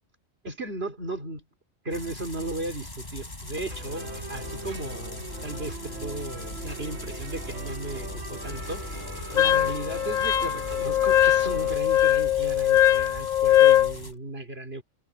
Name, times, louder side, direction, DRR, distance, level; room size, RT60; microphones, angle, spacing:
voice 1, 0.4-1.4 1.8-8.8 9.3-14.8, right 2 dB, 50° right, 3.3 m, -36 dB
sound 1, 1.9-14.1, left 1 dB, 35° left, 4.1 m, -40 dB
sound 2, 3.7-11.8, right 1 dB, 75° right, 3.6 m, -40 dB
Wind instrument woodwind instrument, 9.4-13.9, left 12 dB, 60° left, 0.4 m, -21 dB
omnidirectional pair, 1.3 m